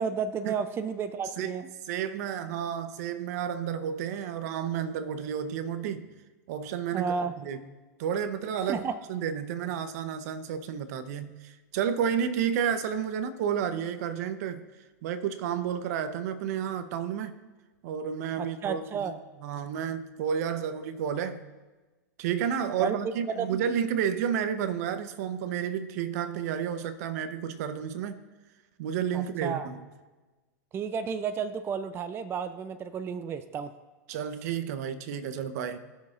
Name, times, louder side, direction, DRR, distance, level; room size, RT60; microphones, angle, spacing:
voice 1, 0.0-1.7 6.9-7.3 8.6-9.0 18.4-19.2 22.8-23.0 23.3-23.6 29.1-29.7 30.7-33.7, right 6 dB, 25° right, 11 dB, 0.4 m, -32 dB
voice 2, 1.9-6.1 6.5-7.7 8.0-8.8 9.1-14.7 15.0-17.4 17.8-19.1 19.4-21.4 22.2-28.2 28.8-29.8 34.1-35.8, right 8 dB, 60° right, 12 dB, 0.8 m, -31 dB
19.0 x 6.5 x 2.5 m, 1.2 s
hypercardioid pair, 110°, 10 cm